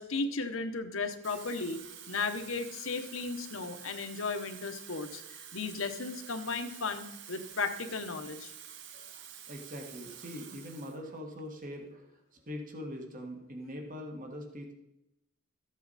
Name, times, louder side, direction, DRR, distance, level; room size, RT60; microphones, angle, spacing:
voice 1, 0.0-5.2 5.5-8.5, left 4 dB, 70° left, 7 dB, 1.0 m, -35 dB
Water tap faucet / Fill (with liquid), 1.1-11.0 11.4-11.6, right 9 dB, 55° right, 0.8 m, -49 dB
voice 2, 8.9-12.1 12.3-14.7, left 1 dB, 40° right, 3 dB, 1.6 m, -43 dB
13.5 x 8.3 x 4.2 m, 0.88 s
head